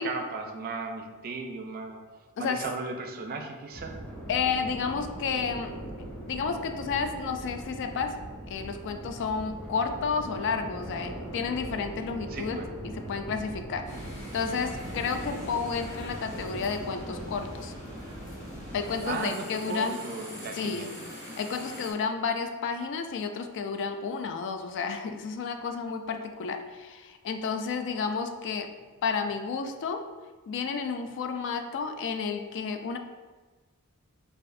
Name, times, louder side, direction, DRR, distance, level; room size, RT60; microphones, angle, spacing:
voice 1, 0.0-2.0 2.4-4.0 12.3-12.7 13.8-14.0 19.0-21.0, right 4 dB, 45° right, 4 dB, 0.4 m, -36 dB
sound 1, 3.7-19.1, right 1 dB, 5° left, 1.0 m, -40 dB
voice 2, 4.3-5.7 6.3-8.2 8.5-12.6 12.8-13.9 14.3-17.7 18.7-20.0 20.5-21.0 21.4-28.7 29.0-30.0 30.5-33.0, left 5 dB, 55° left, 7 dB, 0.3 m, -31 dB
sound 2, 13.8-21.9, left 1 dB, 35° left, 1.0 m, -44 dB
4.6 x 2.5 x 2.5 m, 1.3 s
head